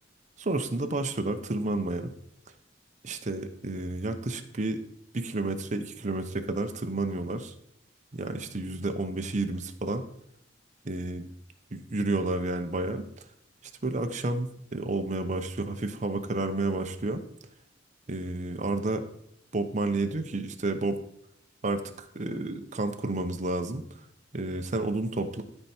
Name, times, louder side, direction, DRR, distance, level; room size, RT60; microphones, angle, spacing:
voice 1, 0.4-2.1 3.0-4.8 5.1-7.5 8.1-10.0 10.8-11.3 11.7-13.1 13.8-17.2 18.1-19.0 19.5-21.0 21.6-23.8 24.3-25.4, right 2 dB, 40° right, 7 dB, 0.7 m, -30 dB
13.0 x 4.5 x 4.3 m, 0.74 s
head